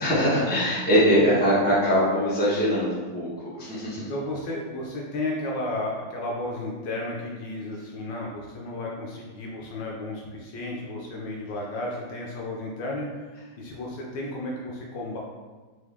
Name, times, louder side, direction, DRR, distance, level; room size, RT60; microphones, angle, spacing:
voice 1, 0.0-3.3 3.6-4.0, equal, 5° left, -9 dB, 0.8 m, -22 dB
voice 2, 3.6-13.3 13.6-15.2, left 2 dB, 70° left, -3 dB, 1.2 m, -33 dB
3.9 x 3.1 x 3.4 m, 1.3 s
omnidirectional pair, 2.1 m